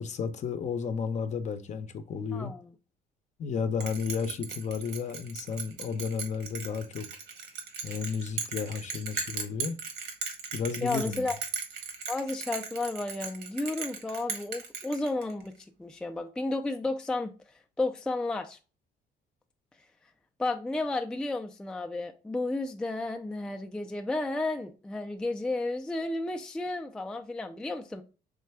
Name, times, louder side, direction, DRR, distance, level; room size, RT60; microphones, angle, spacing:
voice 1, 0.0-2.5 3.4-7.1 7.8-9.8 10.5-11.2, left 6 dB, 45° left, 0.6 m, -33 dB
voice 2, 2.3-2.7 10.8-11.4 12.1-15.5 15.8-17.3 17.8-18.6 20.4-28.0, left 2 dB, 5° left, 0.3 m, -32 dB
Bell, 3.8-15.5, right 5 dB, 80° right, 1.2 m, -37 dB
3.7 x 3.2 x 3.3 m
cardioid pair, 110°, 17 cm